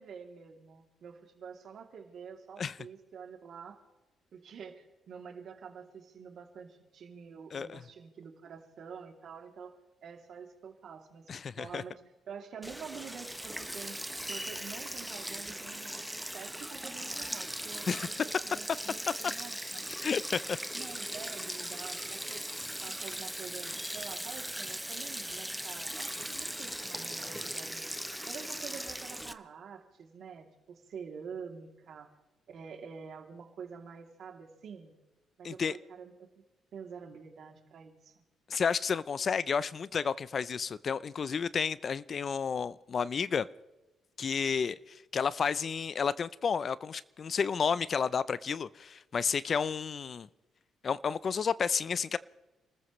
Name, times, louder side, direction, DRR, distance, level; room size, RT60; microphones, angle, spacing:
voice 1, 0.0-3.8 4.3-9.7 10.0-12.0 12.3-14.0 14.3-18.2 18.4-19.8 20.7-22.4 22.8-27.9 28.3-32.1 32.5-34.9 35.4-36.3 36.7-38.2, right 6 dB, 65° right, 3 dB, 2.9 m, -47 dB
voice 2, 7.5-7.8 11.3-11.8 17.9-18.1 20.0-20.6 35.4-35.8 38.5-43.5 44.2-50.3 50.8-52.2, left 6 dB, 45° left, 18 dB, 0.5 m, -31 dB
Sink (filling or washing), 12.6-29.3, equal, 5° right, 0.9 m, -39 dB
29.5 x 14.0 x 3.2 m, 1.1 s
cardioid pair, 90°, 0 cm